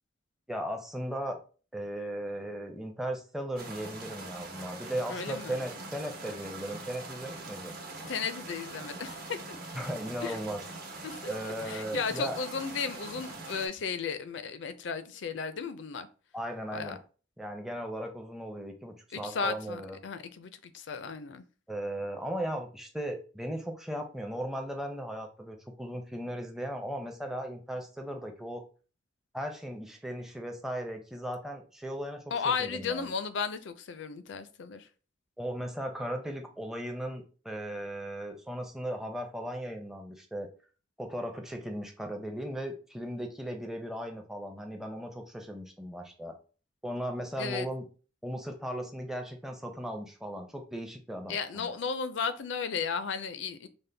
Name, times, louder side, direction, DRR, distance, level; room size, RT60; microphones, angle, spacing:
voice 1, 0.5-1.4 1.7-7.8 9.7-10.6 11.3-12.4 16.3-17.0 17.4-20.0 21.7-28.6 29.3-32.2 32.6-33.1 35.4-40.5 41.0-46.3 46.8-47.8 48.2-51.7, equal, ahead, 0.5 m, -37 dB
sound 1, 3.6-13.7, right 3 dB, 50° right, 0.9 m, -43 dB
voice 2, 5.1-5.6 8.0-9.4 10.2-10.4 11.0-11.2 11.6-16.1 16.7-17.0 19.1-21.4 32.3-34.9 47.4-47.7 51.3-53.7, left 5 dB, 65° left, 0.4 m, -34 dB
5.2 x 2.1 x 3.3 m
head